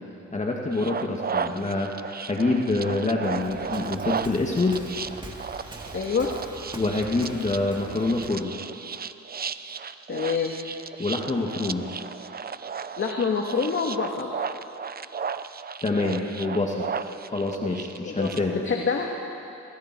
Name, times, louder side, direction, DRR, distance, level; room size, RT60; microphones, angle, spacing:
voice 1, 0.3-1.9 2.2-4.8 6.7-8.6 11.0-11.9 15.8-16.9 17.3-18.5, left 2 dB, 25° left, -1 dB, 2.5 m, -26 dB
sound 1, 0.7-18.4, right 6 dB, 30° right, 0.8 m, -35 dB
Waves surf, 3.2-8.5, right 2 dB, 15° right, 2.9 m, -43 dB
voice 2, 5.9-6.3 10.1-10.6 13.0-14.3 18.0-19.1, left 5 dB, 40° left, 1 dB, 2.1 m, -27 dB
29.0 x 26.0 x 4.7 m, 2.9 s
cardioid pair, 90°, 30 cm